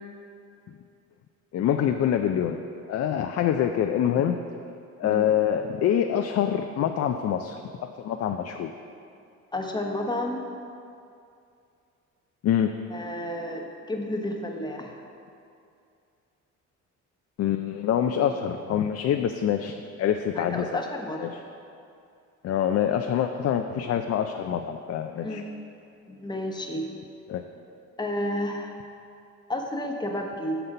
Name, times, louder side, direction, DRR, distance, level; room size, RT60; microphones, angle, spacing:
voice 1, 1.5-2.6 2.9-4.4 5.0-8.7 12.4-12.7 17.4-20.8 21.2-21.4 22.4-25.4 27.3-27.4, left 9 dB, 55° left, 6 dB, 0.4 m, -25 dB
voice 2, 9.5-10.4 12.9-15.0 20.4-21.2 25.2-25.4 26.1-26.8 28.0-28.8 29.5-30.6, left 1 dB, 15° left, 2 dB, 0.9 m, -31 dB
6.7 x 5.8 x 5.4 m, 2.5 s
cardioid pair, 90°, 30 cm